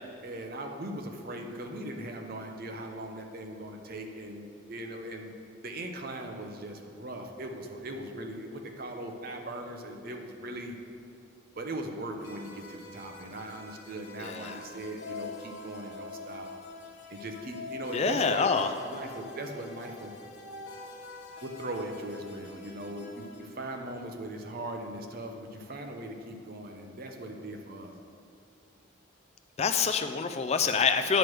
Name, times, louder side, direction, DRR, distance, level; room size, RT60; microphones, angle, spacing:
voice 1, 0.2-5.3 5.6-10.8 11.6-16.5 17.1-18.5 18.8-20.1 21.4-27.9, right 1 dB, 45° right, 3 dB, 0.6 m, -39 dB
sound 1, 12.2-23.5, left 2 dB, 60° left, 0.9 m, -45 dB
voice 2, 14.2-14.5 17.9-18.7 29.6-31.2, left 5 dB, 30° left, 8 dB, 0.3 m, -26 dB
9.0 x 3.2 x 6.0 m, 2.7 s
head